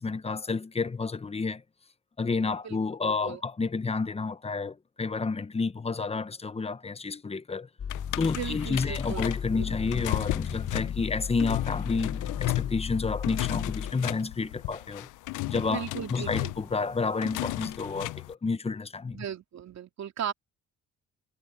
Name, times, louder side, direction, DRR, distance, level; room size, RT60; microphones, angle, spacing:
voice 1, 0.0-1.6 2.2-7.7 8.2-15.1 15.5-15.8 16.1-19.2, left 4 dB, 20° left, 0.9 m, -30 dB
sound 1, 7.8-13.9, left 7 dB, 50° left, 5.5 m, -35 dB
sound 2, 7.9-18.3, left 19 dB, 85° left, 0.6 m, -34 dB
voice 2, 8.3-9.3 9.9-10.0 15.7-16.5 19.1-20.3, right 9 dB, 60° right, 3.1 m, -36 dB
cardioid pair, 90°, 30 cm